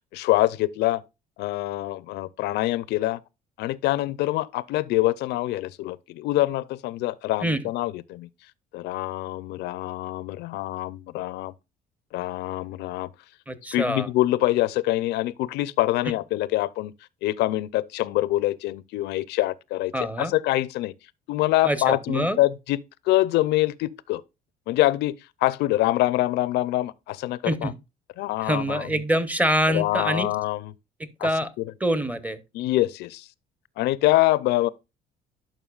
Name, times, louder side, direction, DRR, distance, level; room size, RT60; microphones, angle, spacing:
voice 1, 0.1-1.0 1.4-3.2 3.6-8.3 8.7-11.5 12.1-13.1 13.7-16.9 17.2-19.9 20.2-20.9 21.3-24.2 24.7-27.7 28.2-28.9 29.7-30.7 31.2-31.3 31.6-31.7 32.5-33.2 33.8-34.7, left 16 dB, 80° left, 0.5 m, -25 dB
voice 2, 13.5-14.1 19.9-20.3 21.6-22.4 27.4-27.7 28.4-30.3 31.0-31.5 31.8-32.4, right 1 dB, 10° right, 0.8 m, -25 dB
11.5 x 5.5 x 2.3 m
cardioid pair, 110°, 17 cm